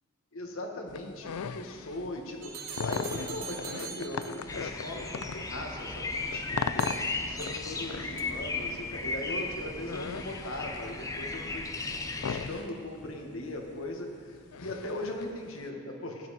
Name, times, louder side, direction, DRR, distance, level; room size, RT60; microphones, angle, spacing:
voice 1, 0.3-6.9 7.2-11.6 12.2-16.3, left 1 dB, 65° left, 1 dB, 1.6 m, -39 dB
sound 1, 0.9-15.6, left 6 dB, 85° left, 0.5 m, -39 dB
sound 2, 2.4-4.6 6.8-7.9 8.2-8.3, right 6 dB, 80° right, 1.5 m, -42 dB
sound 3, 4.5-12.5, left 3 dB, 15° left, 0.6 m, -36 dB
15.0 x 10.5 x 4.2 m, 2.1 s
head